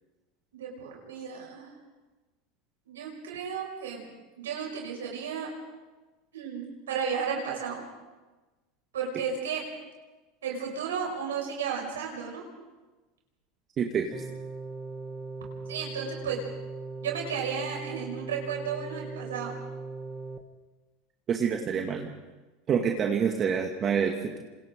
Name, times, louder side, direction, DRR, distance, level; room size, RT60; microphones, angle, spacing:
voice 1, 0.5-1.7 2.9-4.1 4.4-5.5 6.3-7.8 8.9-9.6 10.4-12.4 15.7-16.4 17.0-19.6, right 7 dB, 80° right, -1 dB, 6.0 m, -33 dB
voice 2, 13.8-14.1 21.3-22.1 22.7-24.4, right 7 dB, 35° right, 2 dB, 2.2 m, -27 dB
sound 1, 14.1-20.4, right 3 dB, 5° right, 2.4 m, -39 dB
29.0 x 26.5 x 3.9 m, 1.2 s
hypercardioid pair, 85°, 0 cm